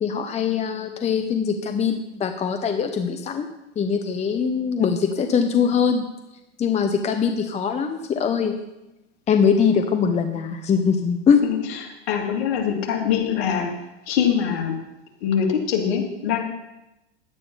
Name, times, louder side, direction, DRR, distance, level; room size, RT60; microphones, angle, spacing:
voice 1, 0.0-3.5 3.8-6.0 6.6-8.5 9.3-11.4, left 6 dB, 20° left, 7 dB, 0.8 m, -22 dB
voice 2, 11.4-13.7 14.1-14.8 15.2-16.4, left 8 dB, 60° left, 1 dB, 2.7 m, -23 dB
11.0 x 9.2 x 5.6 m, 0.94 s
hypercardioid pair, 105°, 34 cm